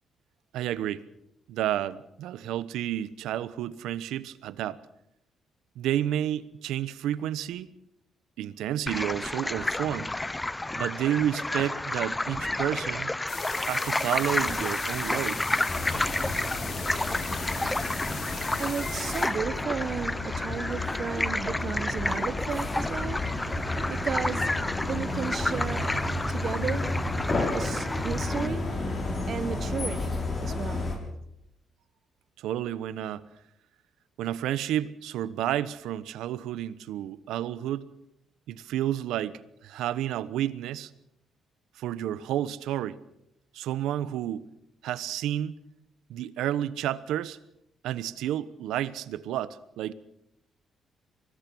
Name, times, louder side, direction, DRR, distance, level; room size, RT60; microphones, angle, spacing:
voice 1, 0.5-1.1 1.5-4.8 5.8-7.7 8.4-10.1 10.8-13.1 13.7-15.4 32.4-33.3 34.2-37.9 38.5-40.9 41.8-43.0 43.5-44.4 44.8-45.6 46.1-47.4 47.8-49.9, right 11 dB, 85° right, 1.0 m, -30 dB
sound 1, 8.9-28.5, left 2 dB, 15° left, 0.8 m, -31 dB
sound 2, 13.3-19.3, left 5 dB, 60° left, 6.2 m, -39 dB
sound 3, 15.7-30.9, left 2 dB, 35° left, 6.5 m, -32 dB
voice 2, 18.6-23.2 23.9-24.5 24.8-25.9 26.3-26.9 27.5-28.6 29.3-31.0, right 7 dB, 50° right, 1.1 m, -34 dB
24.5 x 19.5 x 6.3 m
cardioid pair, 90°, 0 cm